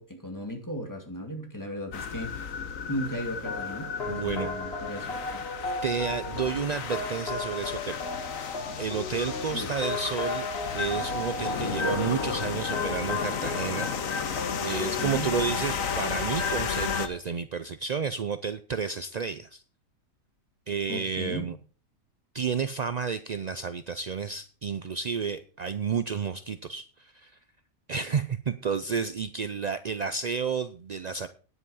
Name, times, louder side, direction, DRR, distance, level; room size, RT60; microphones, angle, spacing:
voice 1, 0.0-2.5 2.9-5.5 9.5-9.7 15.0-15.3 20.9-21.5, equal, 15° left, 2 dB, 2.2 m, -36 dB
sound 1, 1.9-17.1, left 6 dB, 70° left, 1.5 m, -33 dB
sound 2, 3.4-15.1, left 2 dB, 45° left, 2.0 m, -35 dB
voice 2, 4.1-4.5 5.8-8.0 8.8-10.5 10.7-19.6 20.7-21.6 22.3-27.3 27.9-31.3, right 6 dB, 60° right, 11 dB, 0.4 m, -31 dB
10.0 x 8.2 x 5.5 m, 0.38 s
omnidirectional pair, 1.4 m